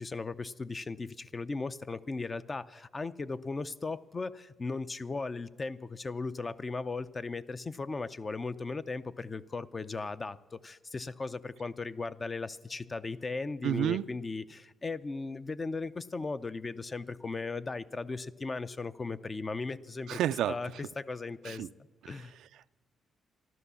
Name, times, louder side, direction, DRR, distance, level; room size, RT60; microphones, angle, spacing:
voice 1, 0.0-20.2 20.5-21.7 22.1-22.3, left 3 dB, 30° left, 0.5 m, -37 dB
voice 2, 13.6-14.1 20.1-20.6 21.4-21.7 22.0-22.7, right 11 dB, 80° right, 0.4 m, -31 dB
14.0 x 12.0 x 6.9 m
cardioid pair, 90°, 0 cm